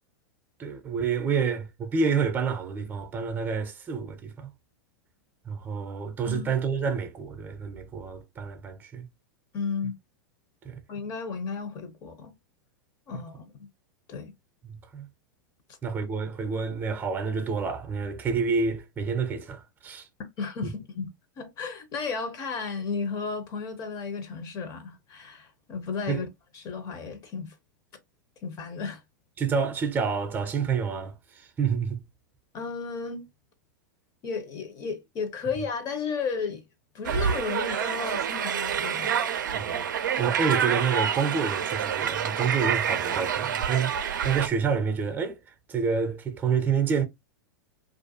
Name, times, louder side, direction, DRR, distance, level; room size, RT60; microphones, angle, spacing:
voice 1, 0.6-4.5 5.4-9.1 10.6-10.8 13.1-13.2 14.6-15.1 15.8-20.1 26.1-26.2 29.4-32.0 39.5-45.4 45.7-47.1, right 5 dB, 20° right, 0.6 m, -28 dB
voice 2, 9.5-9.9 10.9-12.3 13.1-13.7 14.1-14.3 20.4-26.3 26.5-27.5 28.4-29.0 32.5-33.3 34.2-36.6 36.9-39.2, left 5 dB, 35° left, 0.7 m, -33 dB
sound 1, 37.0-44.5, right 8 dB, 75° right, 0.4 m, -27 dB
2.5 x 2.2 x 2.7 m
hypercardioid pair, 100°, 10 cm